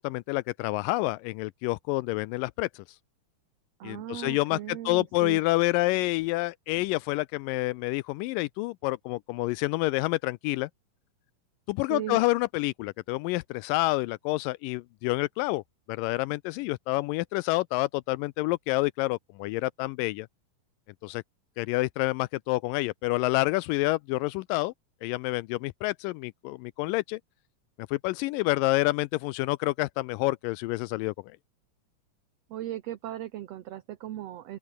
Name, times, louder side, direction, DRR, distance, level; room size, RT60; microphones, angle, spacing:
voice 1, 0.0-2.8 3.8-10.7 11.7-15.6 15.9-20.3 21.0-21.2 21.6-24.7 25.0-27.2 27.9-31.1, left 21 dB, 85° left, 2.2 m, -28 dB
voice 2, 3.8-5.4 11.9-12.2 32.5-34.6, right 12 dB, 65° right, 1.8 m, -37 dB
open air
omnidirectional pair, 3.9 m